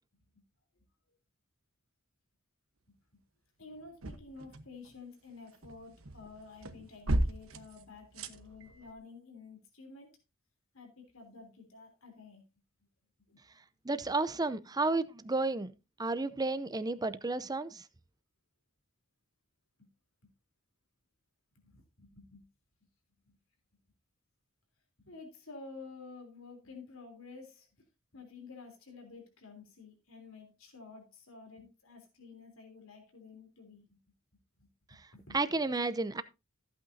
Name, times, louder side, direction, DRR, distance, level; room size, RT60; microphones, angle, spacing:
voice 1, 3.6-10.1 10.7-12.4 13.3-13.4 19.8-19.9 21.6-22.5 23.2-23.4 25.0-27.7 28.1-34.0 34.6-34.7 35.1-35.4, left 4 dB, 75° left, 3.5 m, -51 dB
sound 1, 3.7-5.0 5.3-8.9, right 1 dB, 80° right, 1.1 m, -36 dB
voice 2, 13.8-15.7 16.0-17.8 35.3-36.2, right 3 dB, 20° right, 0.6 m, -32 dB
14.5 x 8.7 x 2.7 m
head